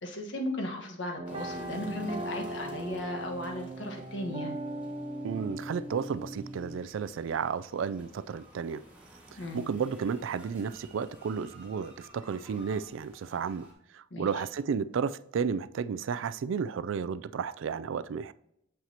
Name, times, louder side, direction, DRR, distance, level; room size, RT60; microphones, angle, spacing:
voice 1, 0.0-4.6 9.4-9.6 14.1-14.3, left 1 dB, 65° left, 1.4 m, -36 dB
sound 1, 1.2-13.7, right 1 dB, 5° right, 1.7 m, -55 dB
sound 2, 1.2-6.8, right 1 dB, 25° right, 0.5 m, -39 dB
voice 2, 5.2-8.8 9.5-13.7 13.9-18.3, right 6 dB, 75° right, 0.3 m, -32 dB
7.5 x 5.7 x 2.8 m
head